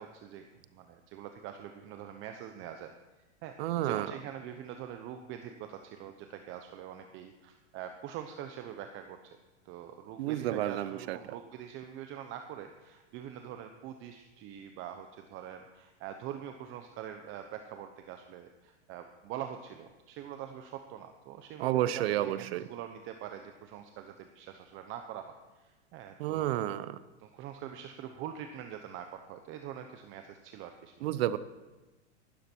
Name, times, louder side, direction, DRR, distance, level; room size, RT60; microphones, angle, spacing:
voice 1, 0.0-2.9 3.4-9.2 9.6-26.8 27.2-31.1, right 10 dB, 35° right, 6 dB, 0.9 m, -44 dB
voice 2, 3.6-4.1 10.2-11.2 21.6-22.7 26.2-27.0 31.0-31.4, right 13 dB, 60° right, 15 dB, 0.8 m, -30 dB
15.0 x 12.5 x 4.6 m, 1.2 s
supercardioid pair, 140°, 36 cm